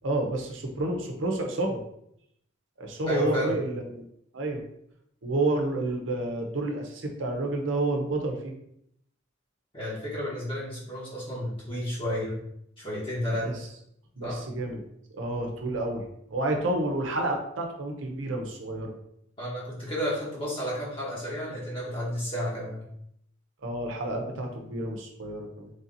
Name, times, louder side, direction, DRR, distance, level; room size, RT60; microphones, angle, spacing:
voice 1, 0.0-1.8 2.8-4.1 4.3-4.6 5.2-8.5 13.4-13.5 14.2-14.8 15.1-18.9 23.6-25.7, right 2 dB, 70° right, 3 dB, 0.7 m, -30 dB
voice 2, 3.0-3.6 9.7-12.4 12.8-13.6 14.2-14.4 19.4-22.8, equal, 25° left, -7 dB, 1.1 m, -31 dB
3.4 x 2.8 x 3.9 m, 0.75 s
head